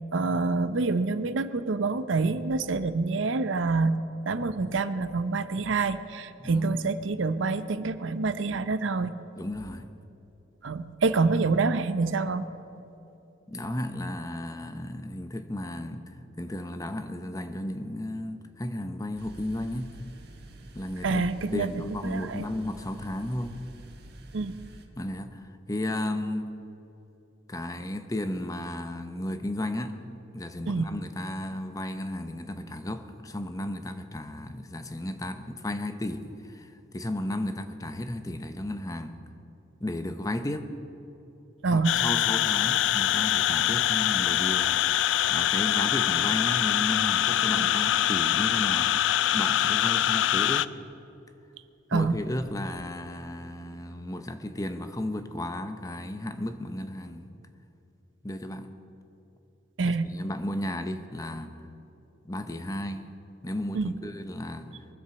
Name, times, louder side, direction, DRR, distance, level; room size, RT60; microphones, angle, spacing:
voice 1, 0.1-4.0 4.3-9.1 10.6-12.5 21.0-21.7 22.0-22.5 24.3-24.6 30.7-30.9 41.6-41.9 47.6-47.7 51.9-52.1 59.8-60.1 63.7-63.9, right 3 dB, 70° right, 0.6 m, -26 dB
voice 2, 6.4-6.8 9.3-9.9 13.5-20.0 20.7-21.2 21.5-23.6 25.0-26.6 27.5-30.0 30.3-39.2 39.8-40.7 41.7-49.0 49.3-50.7 51.9-57.2 58.2-58.7 59.8-61.7 62.2-63.1 63.4-64.8, left 1 dB, 20° left, 0.7 m, -34 dB
sound 1, 19.2-24.9, right 1 dB, 55° right, 1.3 m, -48 dB
sound 2, 41.8-50.7, left 12 dB, 65° left, 0.3 m, -24 dB
22.5 x 7.5 x 7.1 m
head